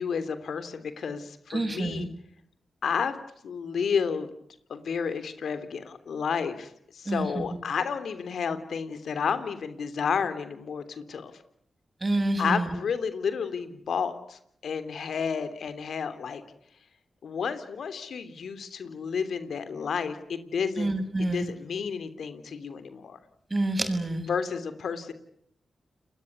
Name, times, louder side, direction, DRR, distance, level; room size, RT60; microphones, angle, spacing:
voice 1, 0.0-2.1 2.8-3.2 3.4-4.3 4.7-11.3 12.4-16.4 17.2-23.2 24.3-25.1, left 6 dB, 75° left, 11 dB, 3.2 m, -31 dB
voice 2, 1.5-2.1 7.1-7.5 12.0-12.7 20.8-21.5 23.5-24.3, right 2 dB, 35° right, 8 dB, 7.5 m, -27 dB
29.5 x 21.0 x 9.6 m, 0.73 s
supercardioid pair, 45°, 0 cm